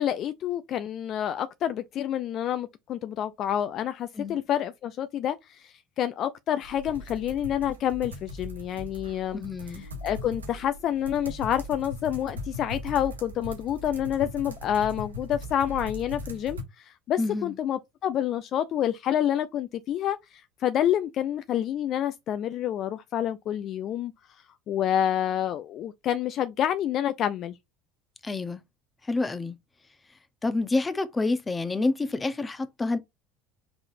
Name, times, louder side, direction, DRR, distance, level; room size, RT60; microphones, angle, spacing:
voice 1, 0.0-9.4 9.7-27.6, left 10 dB, 50° left, 0.4 m, -28 dB
sound 1, 6.6-16.6, left 1 dB, 90° right, 1.0 m, -39 dB
voice 2, 9.3-9.9 17.2-17.6 28.2-28.6 29.1-29.6 30.4-33.0, left 3 dB, 20° left, 0.8 m, -28 dB
4.9 x 3.8 x 2.6 m
hypercardioid pair, 70°, 0 cm